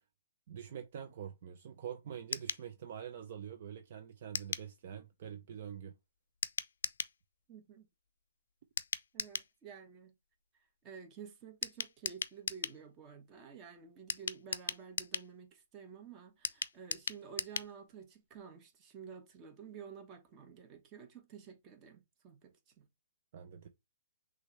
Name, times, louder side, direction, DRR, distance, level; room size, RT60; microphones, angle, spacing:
voice 1, 0.5-5.9 23.3-23.7, right 9 dB, 45° right, 0.6 m, -45 dB
sound 1, 2.3-2.7 4.3-4.7 6.4-7.2 8.8-9.5 11.6-12.8 14.1-15.3 16.4-17.7 18.0-18.1 18.4-18.5, left 6 dB, 75° left, 0.5 m, -38 dB
voice 2, 7.5-7.9 9.1-10.1 10.6-22.9, right 6 dB, 20° right, 1.0 m, -51 dB
6.2 x 2.7 x 3.2 m
hypercardioid pair, 160°, 0 cm